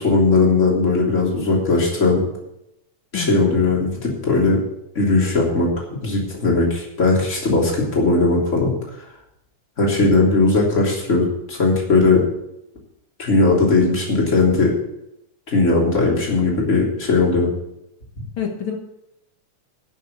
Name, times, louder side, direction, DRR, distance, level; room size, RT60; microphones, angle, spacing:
voice 1, 0.0-2.3 3.1-4.6 4.9-8.7 9.8-12.2 13.2-14.8 15.5-17.5, left 3 dB, 25° left, -2 dB, 3.3 m, -18 dB
voice 2, 3.1-3.5 18.4-18.8, left 6 dB, 50° left, 2 dB, 1.8 m, -27 dB
12.5 x 6.6 x 8.2 m, 0.84 s
omnidirectional pair, 3.7 m